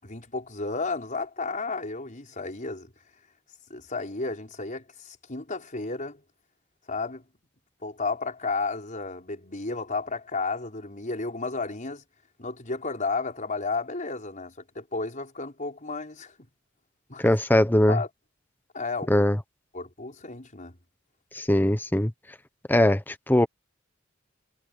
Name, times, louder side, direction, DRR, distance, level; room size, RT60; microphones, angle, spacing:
voice 1, 0.0-2.9 3.7-6.2 6.9-7.2 7.8-12.0 12.4-16.3 17.1-17.4 17.9-18.1 18.7-19.2 19.7-20.7, left 3 dB, 40° left, 5.0 m, -32 dB
voice 2, 17.2-18.0 19.1-19.4 21.3-22.1 22.7-23.5, left 1 dB, 10° left, 1.0 m, -21 dB
head